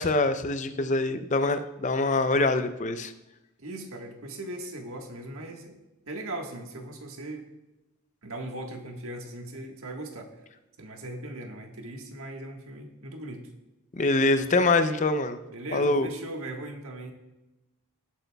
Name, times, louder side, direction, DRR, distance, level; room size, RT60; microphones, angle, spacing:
voice 1, 0.0-3.1 14.0-15.4 15.7-16.1, left 2 dB, 35° left, 10 dB, 0.5 m, -24 dB
voice 2, 3.6-5.8 6.1-7.4 8.2-10.3 10.8-13.4 15.5-17.1, right 1 dB, 70° right, 3 dB, 1.5 m, -38 dB
19.0 x 8.0 x 2.3 m, 1.0 s
head